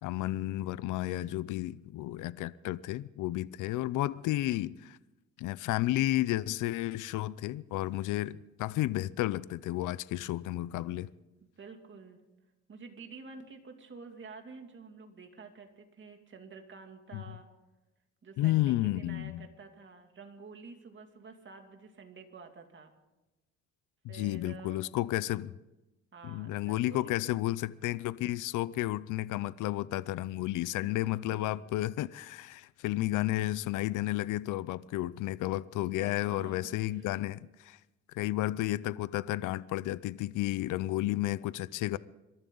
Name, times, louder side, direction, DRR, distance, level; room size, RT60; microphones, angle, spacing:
voice 1, 0.0-5.0 5.4-11.1 17.1-17.2 18.4-19.5 24.0-25.5 26.2-37.8 38.1-42.0, left 16 dB, 90° left, 0.6 m, -32 dB
voice 2, 11.6-12.2 12.7-17.5 18.2-22.9 24.1-24.9 26.1-27.1 30.8-31.7 36.0-37.1, right 4 dB, 40° right, 2.6 m, -50 dB
26.5 x 13.0 x 3.9 m
cardioid pair, 90°, 30 cm